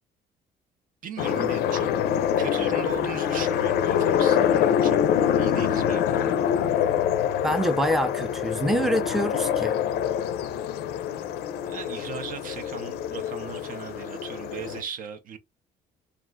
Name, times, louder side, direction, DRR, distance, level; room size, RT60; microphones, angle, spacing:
voice 1, 1.0-1.9 2.4-5.0 5.4-6.4 11.6-15.4, right 7 dB, 55° right, 0.5 m, -38 dB
sound 1, 1.2-14.8, left 9 dB, 75° left, 0.4 m, -25 dB
voice 2, 7.4-9.8, equal, ahead, 0.5 m, -25 dB
2.4 x 2.2 x 3.7 m
cardioid pair, 110°, 17 cm